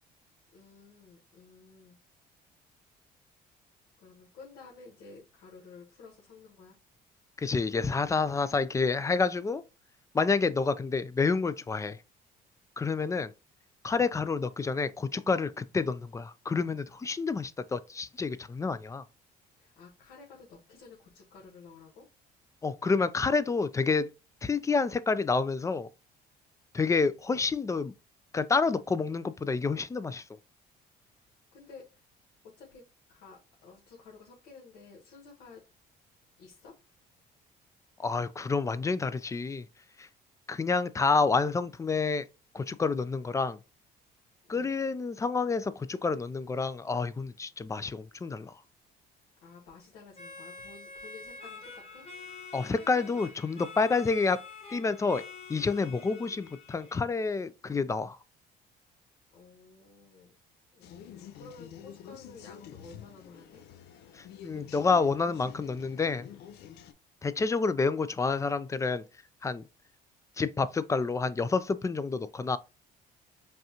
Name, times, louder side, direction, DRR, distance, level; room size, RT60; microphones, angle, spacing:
voice 1, 0.5-2.0 4.0-6.8 19.6-22.1 31.5-32.0 32.6-32.8 33.1-35.6 36.4-36.7 44.5-44.8 49.4-52.1 59.3-60.4 60.7-63.6, left 4 dB, 90° left, 1.3 m, -52 dB
voice 2, 7.4-9.6 10.1-12.0 12.8-13.3 13.8-19.0 22.6-24.1 24.4-25.9 26.7-27.9 28.3-30.2 38.0-39.7 40.0-40.1 40.5-42.2 42.5-43.6 44.5-48.5 52.5-54.4 54.7-55.2 55.5-58.2 64.2-66.3 67.2-69.0 69.4-69.6 70.4-72.6, left 4 dB, 20° left, 0.4 m, -28 dB
sound 1, 50.1-57.0, left 4 dB, 35° left, 1.1 m, -47 dB
sound 2, 60.8-66.9, left 10 dB, 75° left, 0.5 m, -48 dB
5.3 x 2.4 x 2.9 m
cardioid pair, 110°, 17 cm